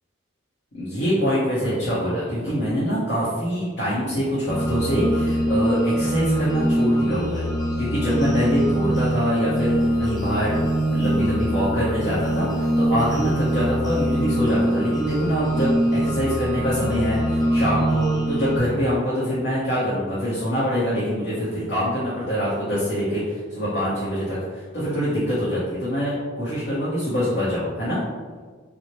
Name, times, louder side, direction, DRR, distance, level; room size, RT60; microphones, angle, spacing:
voice 1, 0.7-7.5 7.8-28.0, equal, 55° left, -9 dB, 0.8 m, -24 dB
sound 1, 4.5-18.6, right 1 dB, 20° left, 0.5 m, -23 dB
4.3 x 2.0 x 3.0 m, 1.5 s
head